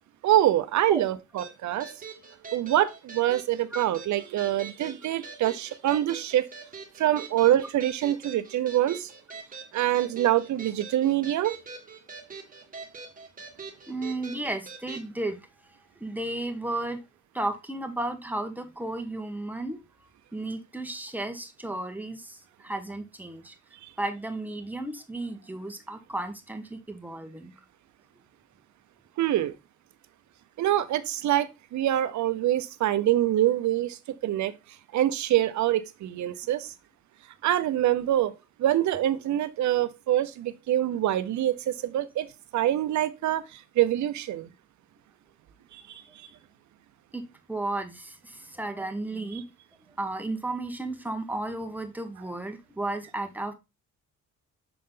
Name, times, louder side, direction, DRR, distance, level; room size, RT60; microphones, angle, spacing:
voice 1, 0.2-1.9 2.5-6.5 7.0-9.1 9.7-11.6 29.2-29.5 30.6-34.5 34.9-36.7 37.4-38.3 38.6-42.3 42.5-44.5 45.7-46.3, right 13 dB, 70° right, 0.7 m, -25 dB
sound 1, 1.4-15.1, right 5 dB, 30° right, 1.7 m, -44 dB
voice 2, 13.9-17.0 17.3-19.8 20.3-23.5 24.0-27.5 47.1-47.2 47.5-49.4 50.0-53.5, right 2 dB, 5° right, 1.2 m, -34 dB
6.9 x 3.8 x 3.7 m
cardioid pair, 90°, 30 cm